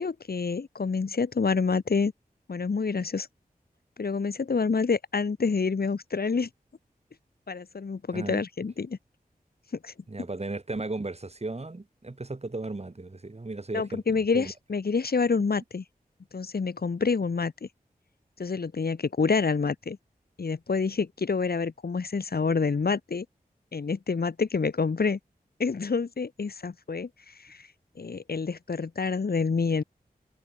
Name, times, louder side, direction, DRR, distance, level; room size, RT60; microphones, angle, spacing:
voice 1, 0.0-2.1 2.5-3.3 4.0-6.5 7.5-9.0 9.8-9.9 13.7-15.8 16.3-17.7 18.4-20.0 20.4-23.3 23.7-25.2 25.6-27.7 28.0-29.8, left 4 dB, 75° left, 2.5 m, -27 dB
voice 2, 8.1-8.4 10.1-14.0 14.3-14.5, right 2 dB, 40° right, 3.3 m, -35 dB
cardioid pair, 40°, 16 cm